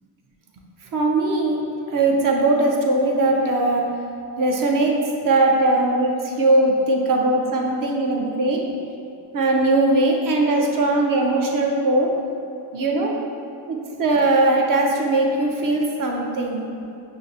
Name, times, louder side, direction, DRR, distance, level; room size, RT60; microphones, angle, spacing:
voice 1, 0.9-1.6 1.9-3.8 4.4-5.0 5.2-8.6 9.3-12.1 12.7-13.1 13.7-16.6, right 2 dB, 45° right, 0 dB, 0.6 m, -20 dB
5.6 x 2.1 x 2.6 m, 2.5 s
cardioid pair, 75°, 45 cm